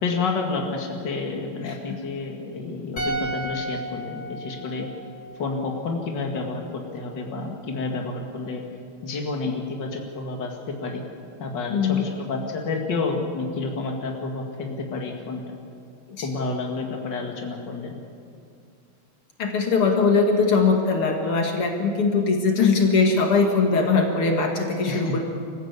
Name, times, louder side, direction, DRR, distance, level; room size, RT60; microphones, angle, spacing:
voice 1, 0.0-4.9 5.4-8.6 9.0-11.0 11.4-15.6 16.2-18.0 24.8-25.2, left 3 dB, 55° left, 1 dB, 2.7 m, -29 dB
sound 1, 3.0-6.2 6.4-6.6, right 1 dB, 25° left, 3.5 m, -34 dB
voice 2, 11.7-12.1 16.1-16.3 19.4-25.2, left 4 dB, 80° left, 2 dB, 2.9 m, -21 dB
26.0 x 15.0 x 8.3 m, 2.4 s
omnidirectional pair, 2.4 m